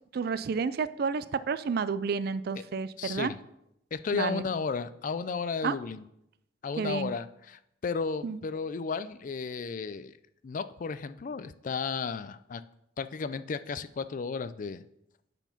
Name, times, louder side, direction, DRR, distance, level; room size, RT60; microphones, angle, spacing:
voice 1, 0.1-3.3 4.1-4.4 5.6-5.7 6.8-7.1 8.2-8.4, right 5 dB, 55° right, 15 dB, 0.4 m, -30 dB
voice 2, 3.0-3.4 3.9-6.0 6.6-10.1 10.4-12.6 13.0-14.8, left 5 dB, 45° left, 13 dB, 0.4 m, -33 dB
8.0 x 4.5 x 5.7 m, 0.80 s
head